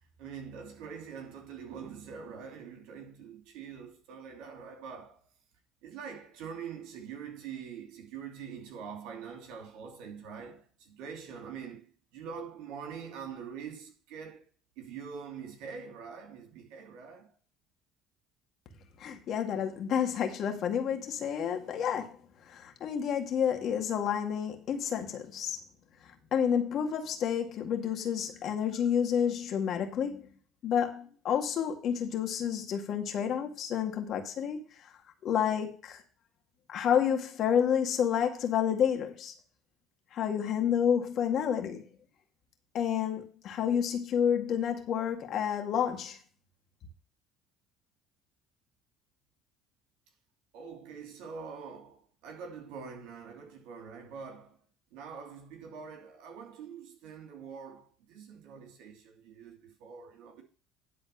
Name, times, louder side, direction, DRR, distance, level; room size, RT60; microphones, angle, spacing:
voice 1, 0.2-5.2 5.8-14.5 14.8-17.3 50.5-54.6 54.9-60.4, right 6 dB, 75° right, 2.8 m, -44 dB
voice 2, 19.0-22.2 22.5-25.6 26.3-30.3 30.6-34.6 35.2-36.0 36.7-39.3 40.1-41.8 42.7-46.2, left 8 dB, 55° left, 2.0 m, -29 dB
11.0 x 4.1 x 7.1 m
hypercardioid pair, 70°, 0 cm